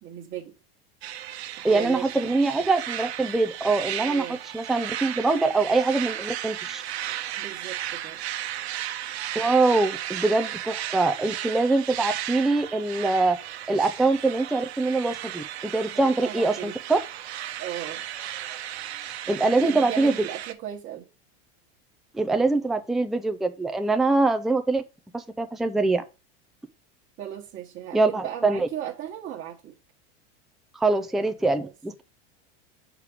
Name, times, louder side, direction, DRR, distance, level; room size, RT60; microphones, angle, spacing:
voice 1, 0.0-0.5 1.6-2.4 4.0-4.4 7.3-8.2 15.9-16.7 17.6-18.0 19.3-21.0 27.2-29.7 31.5-31.7, right 11 dB, 40° right, 1.4 m, -37 dB
sound 1, 1.0-20.5, right 12 dB, 90° right, 1.0 m, -35 dB
voice 2, 1.6-6.8 9.4-13.4 13.7-17.0 19.3-20.1 22.1-24.8 25.1-26.0 27.9-28.7 30.8-32.0, right 3 dB, ahead, 0.5 m, -23 dB
6.7 x 5.1 x 4.9 m
supercardioid pair, 130°, 31 cm